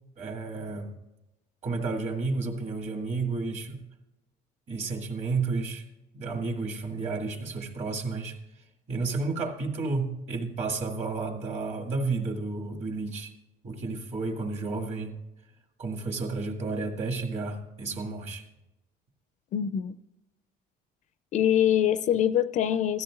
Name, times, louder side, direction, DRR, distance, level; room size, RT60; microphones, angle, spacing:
voice 1, 0.2-0.9 1.6-3.8 4.7-5.8 6.1-8.4 8.9-13.3 13.6-15.1 15.8-18.4, right 3 dB, 40° right, 2.0 m, -31 dB
voice 2, 19.5-20.0 21.3-23.0, left 10 dB, 45° left, 0.4 m, -24 dB
17.0 x 13.5 x 2.4 m
cardioid pair, 150°, 17 cm